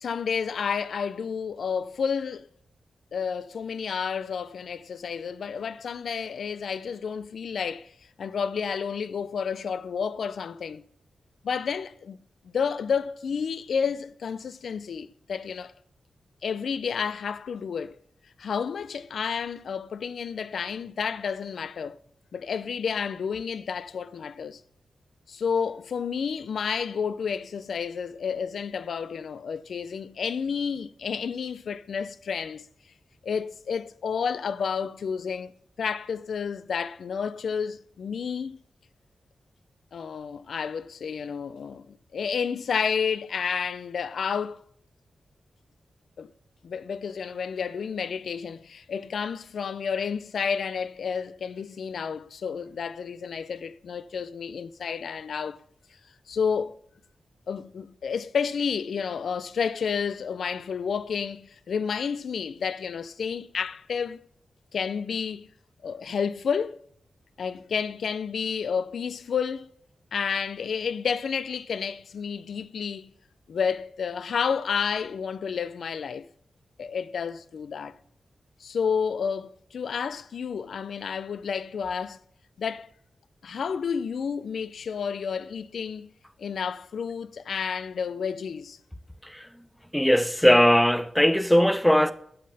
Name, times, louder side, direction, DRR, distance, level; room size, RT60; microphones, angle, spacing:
voice 1, 0.0-2.5 3.1-7.9 8.2-10.8 11.4-12.2 12.4-15.7 16.4-18.0 18.4-22.0 22.3-24.6 25.3-32.7 33.2-35.5 35.8-38.6 39.9-44.6 46.2-46.3 46.6-55.6 56.3-56.8 57.5-64.2 64.7-65.5 65.8-66.8 67.4-69.7 70.1-73.1 73.5-76.3 76.8-78.0 78.6-82.2 82.6-82.9 83.4-86.1 86.4-88.8, left 6 dB, 70° left, 0.5 m, -30 dB
voice 2, 89.9-92.1, equal, 5° left, 0.6 m, -19 dB
8.7 x 7.8 x 6.7 m
wide cardioid pair, 165°, 0 cm